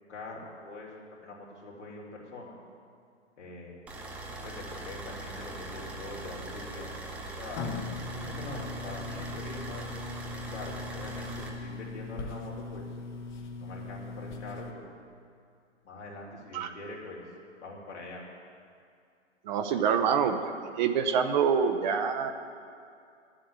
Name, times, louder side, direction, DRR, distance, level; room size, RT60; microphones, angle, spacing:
voice 1, 0.1-2.5 3.4-3.8 4.3-6.9 7.4-7.7 8.2-9.9 10.4-12.8 13.5-14.8 15.8-17.2 17.6-18.2, left 2 dB, 80° left, -3 dB, 3.1 m, -43 dB
sound 1, 3.9-11.5, right 2 dB, 5° right, 0.3 m, -41 dB
sound 2, 6.8-14.7, left 3 dB, 40° left, 1.1 m, -40 dB
voice 2, 19.5-20.4 20.8-22.3, right 7 dB, 40° right, 6 dB, 0.8 m, -26 dB
9.6 x 7.7 x 9.4 m, 2.4 s
hypercardioid pair, 125°, 35 cm